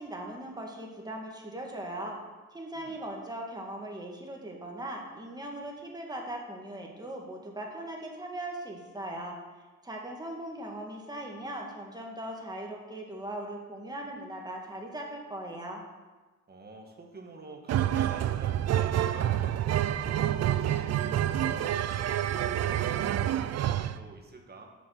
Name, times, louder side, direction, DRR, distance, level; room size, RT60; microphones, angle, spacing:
voice 1, 0.0-2.2 2.5-9.4 9.8-15.8, right 1 dB, 15° right, 0 dB, 2.0 m, -39 dB
voice 2, 16.5-24.7, right 3 dB, 30° right, 2 dB, 1.7 m, -47 dB
sound 1, 17.7-24.0, right 11 dB, 55° right, 0.5 m, -28 dB
7.5 x 6.0 x 6.6 m, 1.2 s
cardioid pair, 90°, 30 cm